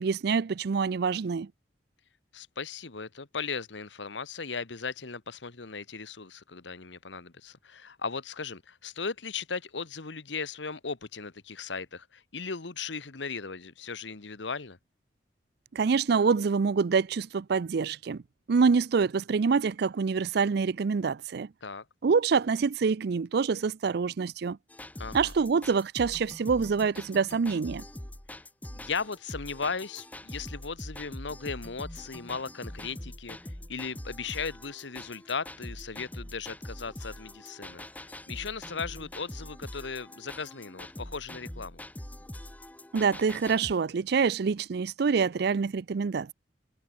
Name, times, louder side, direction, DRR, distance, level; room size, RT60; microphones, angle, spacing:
voice 1, 0.0-1.5 15.7-18.2 18.5-21.5 22.0-24.6 25.1-27.8 42.9-46.3, right 5 dB, 60° right, 0.4 m, -26 dB
voice 2, 2.3-14.8 21.6-21.8 25.0-25.3 28.7-41.8, left 5 dB, 80° left, 1.3 m, -37 dB
sound 1, 24.7-43.7, left 1 dB, 10° left, 0.9 m, -43 dB
head